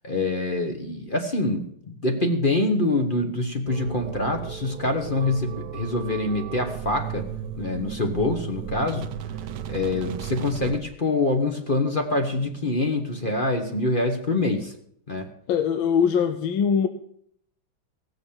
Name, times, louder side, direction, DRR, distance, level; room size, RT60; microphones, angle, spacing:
voice 1, 0.0-7.3 7.6-9.1 9.7-14.7 15.1-15.3, left 2 dB, 30° left, 4 dB, 1.2 m, -25 dB
sound 1, 3.7-10.8, right 9 dB, 70° right, 1.1 m, -35 dB
voice 2, 15.5-16.9, left 7 dB, 80° left, 9 dB, 1.5 m, -22 dB
17.5 x 6.7 x 7.3 m, 0.69 s
omnidirectional pair, 2.2 m